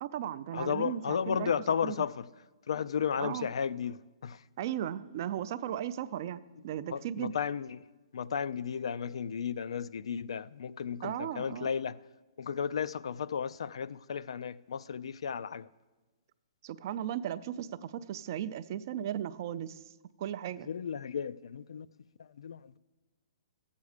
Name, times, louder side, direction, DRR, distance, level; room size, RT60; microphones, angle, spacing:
voice 1, 0.0-1.5 1.8-2.0 3.2-3.5 4.6-7.3 11.0-11.7 16.6-19.8 20.2-20.7, right 10 dB, 35° right, 0.3 m, -36 dB
voice 2, 0.5-2.3 2.7-4.4 6.9-7.8 8.1-12.0 12.4-15.7 20.7-21.9 22.2-22.8, left 7 dB, 80° left, 0.3 m, -34 dB
13.5 x 8.2 x 4.9 m
hypercardioid pair, 170°, 3 cm